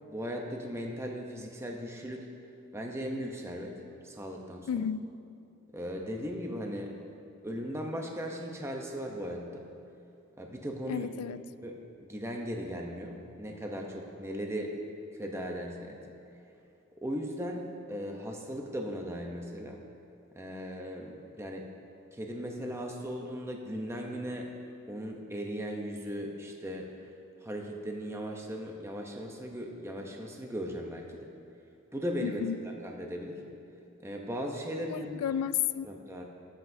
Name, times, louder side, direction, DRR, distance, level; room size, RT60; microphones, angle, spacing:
voice 1, 0.0-2.3 2.7-3.8 4.0-4.7 5.7-6.9 7.4-9.6 10.4-11.1 11.6-11.7 12.0-14.8 15.1-16.0 17.0-19.8 20.3-21.7 22.1-24.5 24.9-26.9 27.4-31.3 31.9-33.4 34.0-35.4 35.8-36.2, equal, 10° right, 1 dB, 0.7 m, -37 dB
voice 2, 4.7-5.0 10.9-11.4 32.2-32.6 34.9-35.9, left 9 dB, 80° left, 16 dB, 0.3 m, -32 dB
18.0 x 7.6 x 2.6 m, 2.6 s
head